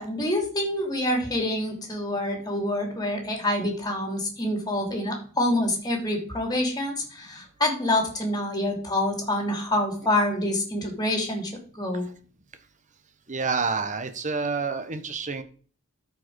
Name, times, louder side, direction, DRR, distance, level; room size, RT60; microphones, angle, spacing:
voice 1, 0.0-12.1, left 1 dB, 20° left, 3 dB, 2.7 m, -27 dB
voice 2, 13.3-15.4, right 4 dB, 35° right, 9 dB, 1.1 m, -28 dB
13.0 x 5.0 x 4.7 m, 0.43 s
head